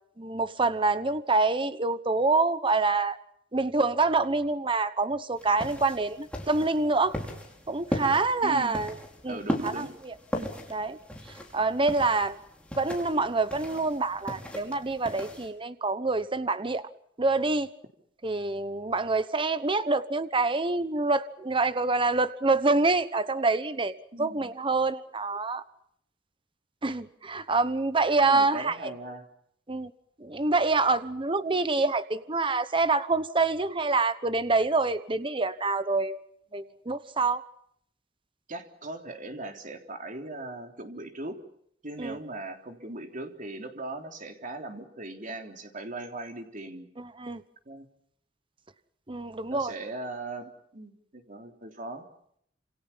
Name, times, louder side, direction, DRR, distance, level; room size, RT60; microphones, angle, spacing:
voice 1, 0.2-3.2 3.5-7.2 7.7-8.9 9.2-11.0 11.5-12.4 12.8-16.9 17.2-17.7 18.2-23.9 24.2-25.6 26.8-28.9 29.7-29.9 30.2-36.2 36.5-37.4 42.0-42.2 47.0-47.4 49.1-49.7, right 3 dB, 30° right, 12 dB, 1.0 m, -26 dB
sound 1, 5.4-15.5, equal, 5° left, 5.3 m, -37 dB
voice 2, 8.4-8.8 9.3-9.9 24.1-24.5 28.2-29.3 38.5-41.4 41.8-46.9 47.6-47.9 49.5-52.0, right 2 dB, 45° right, 4 dB, 3.5 m, -39 dB
28.5 x 27.5 x 5.7 m, 0.70 s
head